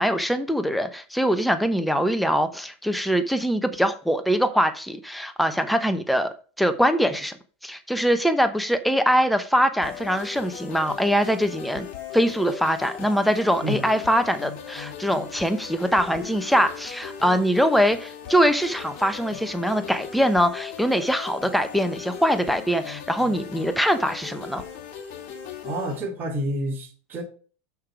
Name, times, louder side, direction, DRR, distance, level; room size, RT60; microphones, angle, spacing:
voice 1, 0.0-6.3 6.6-7.4 7.6-11.9 12.1-24.6, equal, ahead, 0.9 m, -23 dB
sound 1, 9.8-26.0, left 8 dB, 55° left, 2.1 m, -38 dB
voice 2, 25.6-27.2, right 1 dB, 30° right, 3.2 m, -29 dB
6.5 x 5.9 x 4.5 m
hypercardioid pair, 110°, 7 cm